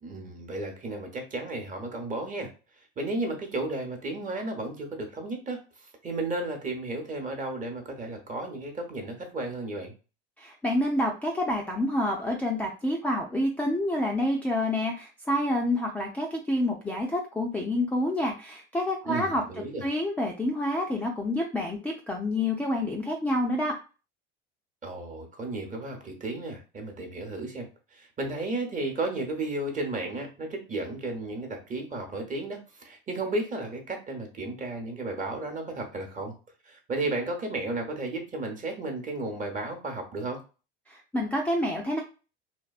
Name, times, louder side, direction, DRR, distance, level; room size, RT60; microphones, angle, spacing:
voice 1, 0.0-2.5 3.0-5.6 6.0-9.9 19.1-19.9 24.8-36.3 36.6-40.4, right 2 dB, 25° right, 3 dB, 0.8 m, -33 dB
voice 2, 10.4-19.4 19.8-23.7 40.9-42.0, left 1 dB, 5° left, 0 dB, 0.3 m, -28 dB
2.6 x 2.1 x 2.3 m, 0.33 s
hypercardioid pair, 90°, 30 cm